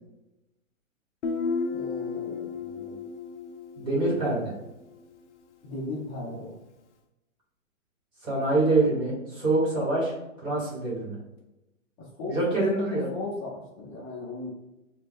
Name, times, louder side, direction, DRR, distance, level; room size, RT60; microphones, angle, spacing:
Guitar, 1.2-4.9, left 4 dB, 60° left, 0.7 m, -33 dB
voice 1, 1.7-3.0 5.6-6.5 12.0-14.5, left 2 dB, 15° left, -6 dB, 1.1 m, -37 dB
voice 2, 3.8-4.5 8.2-11.1 12.3-13.1, right 2 dB, 10° right, -5 dB, 1.4 m, -25 dB
4.6 x 2.4 x 3.7 m, 0.97 s
hypercardioid pair, 160°, 40 cm